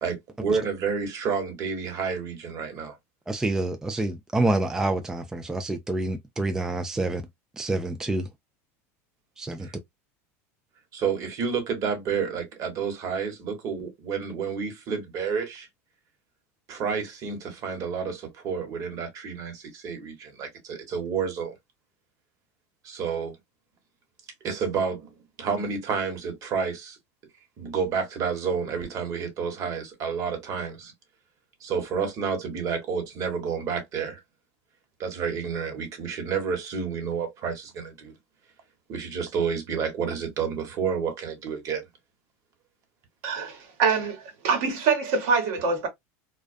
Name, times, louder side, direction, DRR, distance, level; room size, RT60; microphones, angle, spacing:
voice 1, 0.0-3.0 9.6-9.7 10.9-15.7 16.7-21.5 22.8-23.4 24.4-25.1 25.4-27.0 27.6-30.9 31.6-34.2 35.0-38.1 38.9-41.8, right 6 dB, 45° right, 1.2 m, -30 dB
voice 2, 3.3-7.2 7.6-8.3 9.4-9.7, right 2 dB, 5° right, 0.3 m, -27 dB
voice 3, 43.2-45.9, right 5 dB, 70° right, 1.1 m, -25 dB
2.3 x 2.2 x 2.4 m
supercardioid pair, 115°, 8 cm